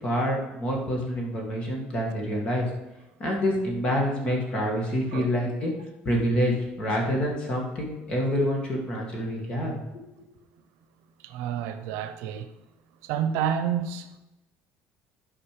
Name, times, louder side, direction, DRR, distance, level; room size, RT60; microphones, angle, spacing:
voice 1, 0.0-2.7 3.2-5.7 6.1-9.8 10.2-10.3, equal, 25° left, 2.1 m, -27 dB
voice 2, 11.2-12.5 13.0-14.2, right 8 dB, 80° right, 0.8 m, -29 dB
12.0 x 5.1 x 5.0 m
cardioid pair, 170°, 4 cm